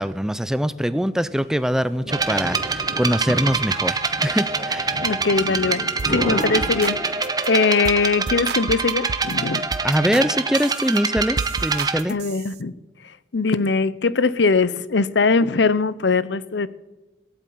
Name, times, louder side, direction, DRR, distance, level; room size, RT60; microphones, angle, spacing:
voice 1, 0.0-4.9 9.8-12.1, equal, 5° right, 14 dB, 0.5 m, -23 dB
sound 1, 1.6-7.4, equal, 40° left, 7.3 m, -32 dB
sound 2, 2.1-12.0, right 4 dB, 20° right, 0.9 m, -25 dB
voice 2, 5.0-9.6 10.1-10.2 12.1-12.7 13.3-16.7, left 4 dB, 75° left, 17 dB, 0.7 m, -21 dB
sound 3, 6.0-6.2 6.4-7.0 7.2-7.5 7.8-8.0 8.3-9.3 9.7-10.3 10.5-12.6, right 4 dB, 60° right, 0.6 m, -32 dB
16.0 x 8.1 x 9.3 m, 1.1 s
head